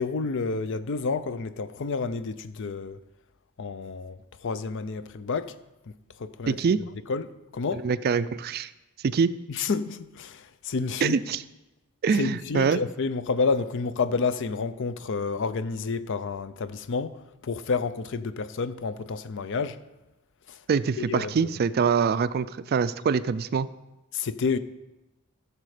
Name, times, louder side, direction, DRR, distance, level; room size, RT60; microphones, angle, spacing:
voice 1, 0.0-3.0 3.6-4.2 4.4-5.5 6.2-6.6 7.1-7.9 9.5-11.2 12.1-17.1 17.4-19.8 21.0-21.3 24.1-24.6, left 4 dB, 60° left, 0.5 m, -29 dB
voice 2, 6.5-6.8 7.7-8.7 9.0-9.4 11.0-11.4 12.0-12.8 20.7-23.7, right 5 dB, 45° right, 0.3 m, -24 dB
14.5 x 6.7 x 4.9 m
head